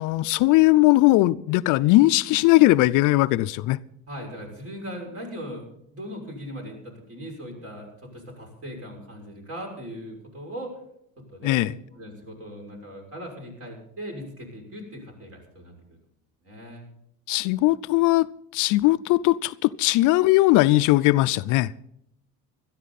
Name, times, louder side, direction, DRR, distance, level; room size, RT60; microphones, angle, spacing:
voice 1, 0.0-3.8 11.4-11.7 17.3-18.3 18.5-21.7, left 18 dB, 60° left, 0.5 m, -19 dB
voice 2, 4.1-5.6 5.9-10.7 11.2-15.7 16.4-16.8, equal, 45° right, 6.3 m, -39 dB
17.5 x 13.0 x 4.1 m
supercardioid pair, 105°, 34 cm